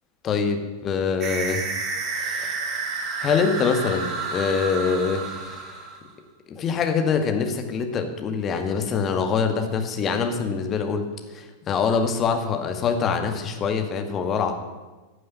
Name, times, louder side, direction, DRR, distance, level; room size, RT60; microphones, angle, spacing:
voice 1, 0.2-1.7 2.1-2.8 3.2-5.9 6.5-11.1 11.3-14.5, left 5 dB, 30° left, 6 dB, 2.1 m, -25 dB
sound 1, 1.2-6.1, right 4 dB, 35° right, 2.4 m, -30 dB
15.5 x 7.9 x 9.6 m, 1.2 s
figure-of-eight pair, 90°, 0 cm